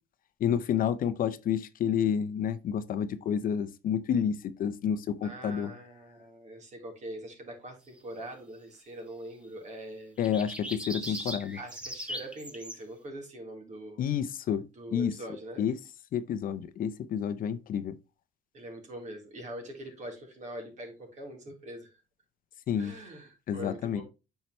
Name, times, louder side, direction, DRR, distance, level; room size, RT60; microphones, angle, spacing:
voice 1, 0.4-5.7 10.2-11.6 14.0-14.6 14.9-15.2 15.6-15.7 16.1-18.0 22.7-22.9 23.5-24.0, left 8 dB, 55° left, 0.7 m, -29 dB
voice 2, 5.2-10.2 11.0-14.0 14.7-15.6 18.5-22.0 22.8-24.0, right 1 dB, 45° right, 3.9 m, -43 dB
sound 1, 10.2-12.8, equal, 5° right, 1.5 m, -39 dB
8.8 x 5.7 x 3.2 m
cardioid pair, 110°, 17 cm